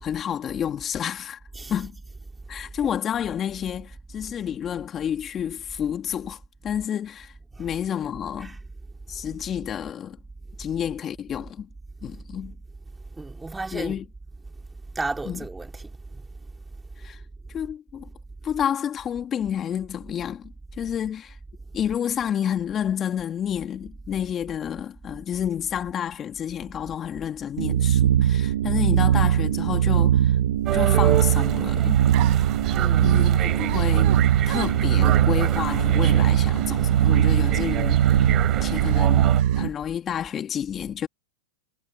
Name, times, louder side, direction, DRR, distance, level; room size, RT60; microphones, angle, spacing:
voice 1, 0.0-1.4 1.7-2.0 2.5-7.3 7.6-8.6 9.1-10.2 10.6-11.7 12.0-12.6 13.7-14.0 15.3-15.4 17.0-17.2 17.5-18.1 18.4-21.4 21.7-30.4 30.7-32.5 33.0-34.2 34.5-38.3 38.6-41.1, left 9 dB, 30° left, 2.6 m, -30 dB
voice 2, 13.2-14.0 14.9-16.2 32.7-33.2, right 3 dB, 10° right, 3.3 m, -34 dB
sound 1, 27.6-39.7, right 10 dB, 75° right, 1.4 m, -20 dB
sound 2, 30.7-39.4, right 12 dB, 35° right, 3.8 m, -29 dB
sound 3, 31.3-31.6 32.1-37.8 38.2-38.4 38.8-39.6, right 33 dB, 50° right, 7.8 m, -39 dB
hypercardioid pair, 115°, 0 cm